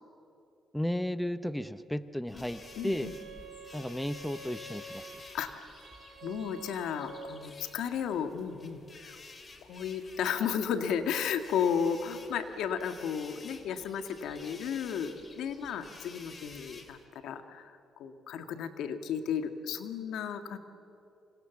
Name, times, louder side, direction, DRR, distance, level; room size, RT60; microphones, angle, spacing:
voice 1, 0.7-3.1 3.7-5.1, equal, 5° left, 13 dB, 0.8 m, -34 dB
sound 1, 2.3-17.1, left 3 dB, 35° left, 2.9 m, -52 dB
Bowed string instrument, 2.4-7.6, right 2 dB, 65° right, 5.7 m, -48 dB
voice 2, 2.8-3.1 5.3-5.5 6.2-9.2 9.7-17.0 17.2-20.6, left 7 dB, 80° left, 8 dB, 1.8 m, -33 dB
28.5 x 26.5 x 7.1 m, 2.7 s
cardioid pair, 90°, 0 cm